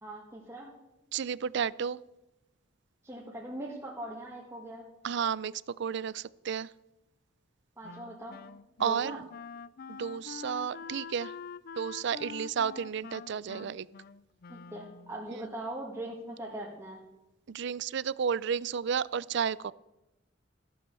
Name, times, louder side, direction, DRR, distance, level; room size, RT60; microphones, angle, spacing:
voice 1, 0.0-0.7 3.0-4.9 7.8-8.5 8.8-9.2 14.5-17.1, right 1 dB, 15° right, -4 dB, 2.0 m, -41 dB
voice 2, 1.1-2.0 5.0-6.7 8.8-9.3 9.9-11.3 11.8-13.9 15.3-15.5 17.5-19.7, right 7 dB, 65° right, 21 dB, 0.4 m, -32 dB
Wind instrument woodwind instrument, 7.8-15.3, left 5 dB, 50° left, 0.4 m, -45 dB
15.0 x 8.5 x 6.8 m, 0.98 s
head